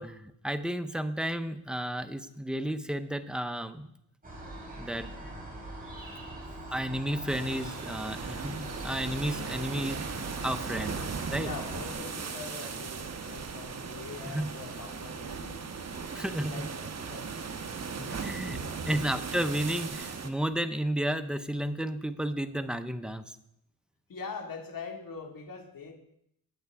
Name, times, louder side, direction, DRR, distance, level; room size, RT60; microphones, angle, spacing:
voice 1, 0.0-3.9 4.8-5.3 6.7-11.0 11.3-11.5 14.3-14.5 16.1-16.5 18.0-18.6 18.9-23.2, equal, ahead, 9 dB, 0.7 m, -32 dB
sound 1, 4.2-11.9, right 1 dB, 20° right, 4.5 m, -43 dB
sound 2, 7.3-20.3, right 5 dB, 40° right, 1.2 m, -38 dB
voice 2, 11.4-15.6 16.1-16.2 16.5-17.3 18.0-18.9 24.1-25.9, left 4 dB, 55° left, 3 dB, 2.3 m, -43 dB
19.5 x 8.0 x 3.6 m, 0.75 s
cardioid pair, 90°, 41 cm